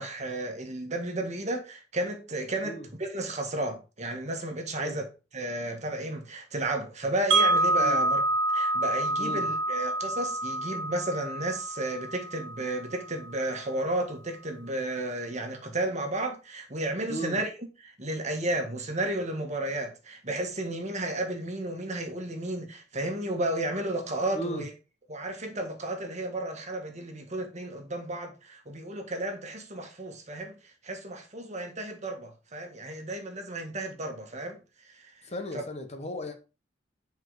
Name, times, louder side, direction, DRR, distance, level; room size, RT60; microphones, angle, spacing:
voice 1, 0.0-8.2 8.5-24.7 25.1-35.3 35.5-35.6, right 1 dB, 40° right, 1.7 m, -33 dB
Wind chime, 7.3-13.3, right 2 dB, 85° right, 1.3 m, -27 dB
voice 2, 17.1-17.4 24.3-24.6 35.2-36.4, equal, 35° left, 1.4 m, -36 dB
8.9 x 4.8 x 4.9 m
head